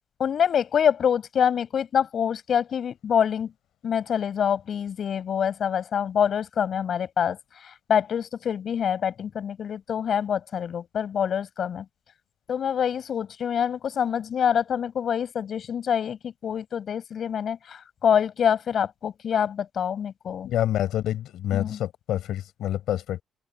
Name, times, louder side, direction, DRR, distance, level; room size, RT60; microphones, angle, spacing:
voice 1, 0.2-3.5 3.8-11.8 12.5-20.5 21.5-21.8, left 8 dB, 60° left, 7.5 m, -26 dB
voice 2, 20.4-23.2, left 12 dB, 80° left, 5.5 m, -27 dB
open air
cardioid pair, 90°, 0 cm